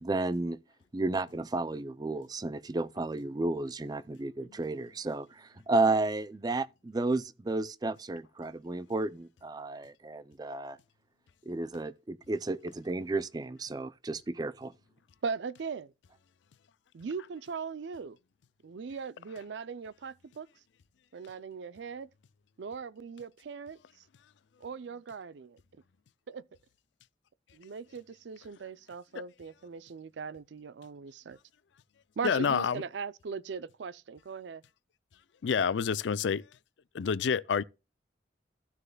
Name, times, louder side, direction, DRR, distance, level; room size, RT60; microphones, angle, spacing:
voice 1, 0.0-0.6 0.9-10.8 11.5-14.7, right 2 dB, 20° right, 0.4 m, -32 dB
voice 2, 15.2-15.9 16.9-18.2 18.6-20.5 21.1-22.1 22.6-23.8 24.6-25.6 26.3-26.5 27.5-31.4 32.2-34.6, right 5 dB, 85° right, 0.4 m, -39 dB
voice 3, 32.2-32.8 35.4-36.4 36.9-37.6, left 6 dB, 85° left, 0.4 m, -28 dB
15.0 x 6.5 x 2.2 m
head